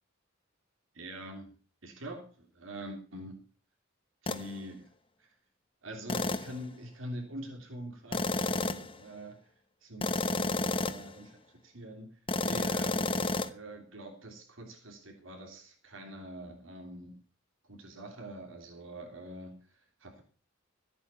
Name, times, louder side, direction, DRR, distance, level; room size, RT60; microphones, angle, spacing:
voice 1, 0.9-1.5 1.8-3.4 4.2-4.9 5.2-5.3 5.8-9.5 9.8-12.1 12.4-17.2 17.6-20.2, right 1 dB, 80° right, 3 dB, 3.1 m, -45 dB
sound 1, 4.3-4.5 6.1-6.6 8.1-9.0 10.0-11.1 12.3-13.5, left 2 dB, 25° left, 1.0 m, -31 dB
15.0 x 8.6 x 6.9 m, 0.39 s
head